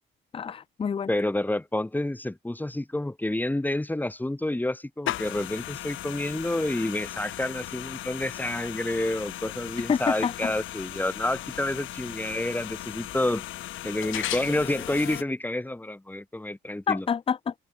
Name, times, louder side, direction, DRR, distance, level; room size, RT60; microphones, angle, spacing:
voice 1, 0.3-1.1 9.9-10.5 16.9-17.5, left 7 dB, 30° left, 0.5 m, -27 dB
voice 2, 1.1-13.4 13.8-17.1, left 1 dB, 10° left, 2.4 m, -29 dB
sound 1, 5.1-15.2, left 14 dB, 85° left, 4.1 m, -37 dB
cardioid pair, 90°, 20 cm